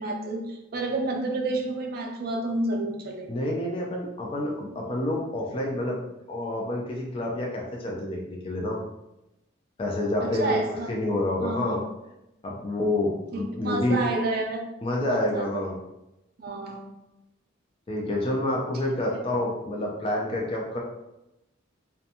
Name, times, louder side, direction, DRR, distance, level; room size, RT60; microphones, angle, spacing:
voice 1, 0.0-3.5 10.2-10.9 11.4-11.8 13.3-14.6 15.0-15.6 16.4-16.9, right 2 dB, 50° right, 2 dB, 0.4 m, -30 dB
voice 2, 3.3-6.0 6.3-8.8 9.8-10.5 10.9-11.8 12.4-14.0 14.8-15.8 17.9-20.8, left 1 dB, 30° left, -1 dB, 0.3 m, -28 dB
2.5 x 2.2 x 2.7 m, 0.92 s
head